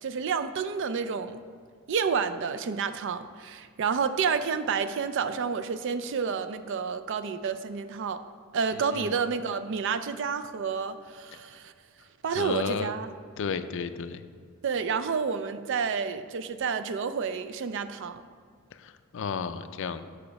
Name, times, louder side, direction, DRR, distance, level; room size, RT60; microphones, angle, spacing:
voice 1, 0.0-1.4 1.9-8.2 8.5-11.7 12.2-13.1 14.6-18.2, right 6 dB, 60° right, 11 dB, 0.4 m, -30 dB
voice 2, 8.7-9.1 11.3-11.4 12.3-12.9 13.4-14.2 18.7-20.0, left 6 dB, 60° left, 11 dB, 0.4 m, -33 dB
6.8 x 5.0 x 5.2 m, 2.1 s
head